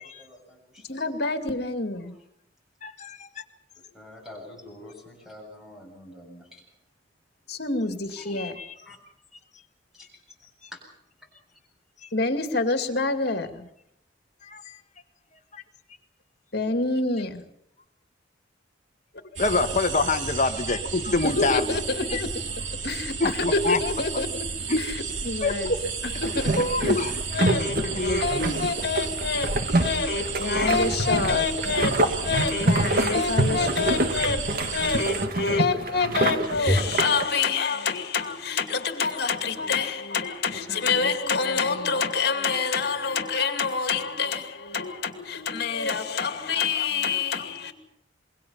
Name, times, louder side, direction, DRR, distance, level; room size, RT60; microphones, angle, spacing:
voice 1, 0.0-1.1 3.9-6.6 8.2-8.3 8.8-9.0 9.9-10.8, left 1 dB, 5° right, 7.6 m, -46 dB
voice 2, 0.9-2.1 7.5-8.6 12.1-13.7 16.5-17.4 21.1-22.4 22.8-24.5 24.7-24.9 25.2-25.7 26.2-27.0 27.3-47.7, left 4 dB, 60° left, 2.4 m, -27 dB
voice 3, 2.8-3.4 8.3-8.7 12.0-12.1 14.4-14.8 15.5-15.6 19.4-21.8 22.1-22.2 23.2-23.8 24.7-24.8 25.4-25.5 26.6-27.1 27.7-28.7, left 3 dB, 40° left, 1.5 m, -26 dB
sound 1, 19.4-35.3, right 4 dB, 80° right, 2.2 m, -33 dB
sound 2, 26.2-37.2, right 1 dB, 50° right, 1.9 m, -26 dB
27.0 x 22.5 x 5.7 m
head